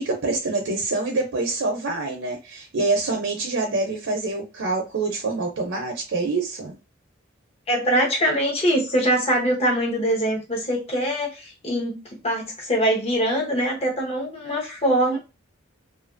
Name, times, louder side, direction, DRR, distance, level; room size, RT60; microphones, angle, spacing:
voice 1, 0.0-6.8, right 3 dB, 65° right, 0.6 m, -26 dB
voice 2, 7.7-15.2, equal, 30° left, 0.8 m, -23 dB
2.7 x 2.5 x 2.5 m
head